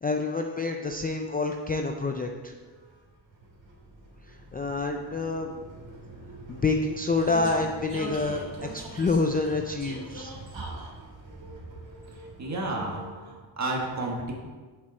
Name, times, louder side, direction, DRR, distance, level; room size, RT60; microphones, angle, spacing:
voice 1, 0.0-2.5 4.3-5.6 6.5-8.5 8.7-10.3, left 3 dB, 20° left, 3 dB, 0.3 m, -27 dB
Vehicle, 1.5-13.4, right 1 dB, 85° right, 2.7 m, -43 dB
voice 2, 12.2-14.3, right 2 dB, 40° right, 0 dB, 1.5 m, -32 dB
7.9 x 7.1 x 4.2 m, 1.4 s
wide cardioid pair, 170°, 43 cm